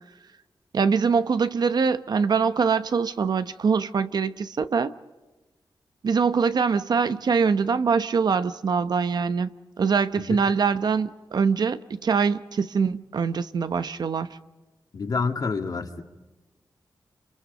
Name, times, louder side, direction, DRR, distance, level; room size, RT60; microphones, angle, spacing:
voice 1, 0.7-4.9 6.0-9.5 9.8-14.3, right 5 dB, 65° right, 0.9 m, -23 dB
voice 2, 14.9-16.0, left 4 dB, 55° left, 2.3 m, -28 dB
30.0 x 28.0 x 5.3 m
wide cardioid pair, 135°, 8 cm